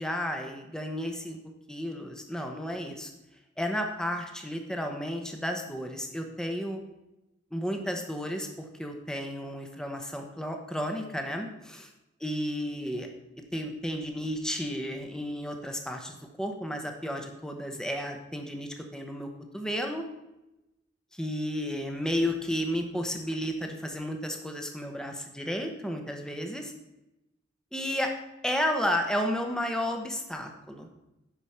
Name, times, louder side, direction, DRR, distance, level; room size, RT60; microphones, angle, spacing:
voice 1, 0.0-1.4 1.7-3.1 3.6-6.8 7.5-11.9 12.2-13.1 13.5-20.0 21.1-26.7 27.7-28.1 28.4-30.9, equal, 5° left, 3 dB, 1.0 m, -32 dB
10.5 x 5.0 x 5.6 m, 0.96 s
head